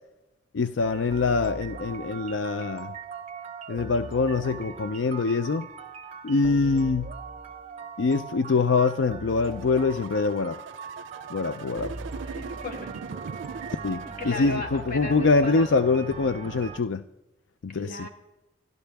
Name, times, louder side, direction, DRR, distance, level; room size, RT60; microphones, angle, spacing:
voice 1, 0.5-3.0 3.7-5.7 6.2-7.1 8.0-10.6 11.3-11.9 13.8-17.0 17.6-18.1, left 4 dB, 80° left, 11 dB, 0.5 m, -24 dB
sound 1, 0.8-16.8, right 4 dB, 35° right, 0.7 m, -40 dB
sound 2, 9.3-14.6, right 6 dB, 90° right, 0.4 m, -41 dB
voice 2, 12.2-12.9 13.5-13.6 14.0-15.7 17.7-18.1, left 1 dB, 50° left, 2 dB, 2.4 m, -36 dB
28.5 x 12.5 x 3.5 m, 1.0 s
head